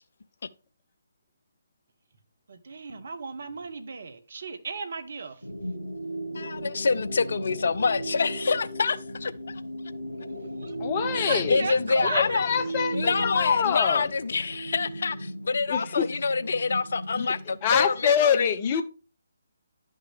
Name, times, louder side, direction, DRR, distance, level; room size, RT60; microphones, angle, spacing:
voice 1, 2.5-5.4 10.6-10.7 11.3-12.4 12.7-13.1, right 4 dB, 55° right, 1.1 m, -35 dB
sound 1, 5.4-18.1, right 1 dB, 85° left, 1.7 m, -36 dB
voice 2, 6.3-9.6 11.1-12.5 12.9-18.5, left 4 dB, 55° left, 0.5 m, -27 dB
voice 3, 10.8-11.6 12.0-14.1 15.7-16.1 17.1-17.4 17.6-18.8, left 8 dB, 30° left, 0.8 m, -25 dB
11.0 x 5.6 x 3.4 m
figure-of-eight pair, 140°, 0 cm